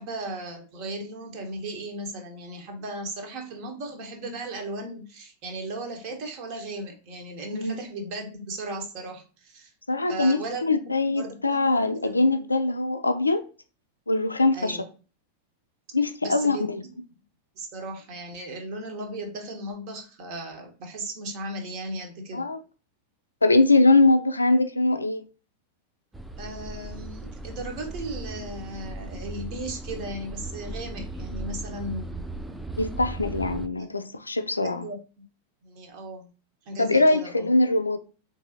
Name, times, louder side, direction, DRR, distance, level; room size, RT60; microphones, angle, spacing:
voice 1, 0.0-9.7 10.1-11.7 11.9-12.3 14.5-14.8 16.2-16.9 17.5-22.5 26.4-32.2 33.8-33.9 34.6-35.0 35.6-36.3 36.7-37.5, right 1 dB, 45° right, 0.9 m, -36 dB
voice 2, 9.9-13.5 14.1-14.8 15.9-16.8 22.3-22.6 23.4-25.3 32.8-34.8 36.8-38.0, left 2 dB, 80° left, 0.3 m, -22 dB
sound 1, 26.1-33.7, right 2 dB, 5° right, 0.3 m, -37 dB
3.8 x 2.6 x 2.6 m
figure-of-eight pair, 90°, 0 cm